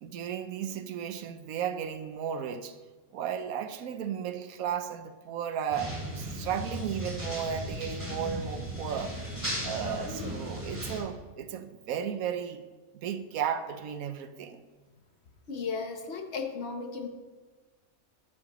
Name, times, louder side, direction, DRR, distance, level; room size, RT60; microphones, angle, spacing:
voice 1, 0.0-2.8 3.1-9.2 9.6-12.6 12.9-14.6, right 8 dB, 90° right, 10 dB, 1.1 m, -34 dB
sound 1, 5.7-11.0, equal, 15° right, 2.6 m, -36 dB
voice 2, 15.5-17.1, left 5 dB, 55° left, 4 dB, 1.2 m, -35 dB
12.5 x 9.8 x 3.0 m, 1.3 s
omnidirectional pair, 1.4 m